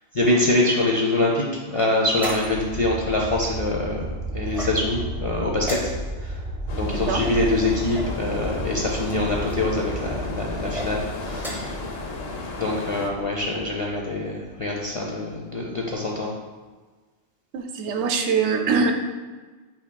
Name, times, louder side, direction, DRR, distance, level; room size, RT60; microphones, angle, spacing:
voice 1, 0.1-4.0 4.3-5.9 6.2-6.4 6.7-11.7 12.6-16.3, left 2 dB, 45° left, -2 dB, 0.4 m, -24 dB
sound 1, 1.7-2.8 4.5-5.1 5.6-6.3 7.2-8.2 9.0-9.6 10.6-10.9 11.3-11.8, left 1 dB, ahead, 0.6 m, -36 dB
sound 2, 2.1-14.8 15.3-15.4, right 1 dB, 35° right, 0.9 m, -34 dB
sound 3, 6.7-13.1, left 3 dB, 65° left, 0.8 m, -34 dB
voice 2, 6.8-7.2 17.5-18.9, right 5 dB, 80° right, 5 dB, 0.9 m, -23 dB
8.1 x 2.9 x 2.2 m, 1.4 s
omnidirectional pair, 1.2 m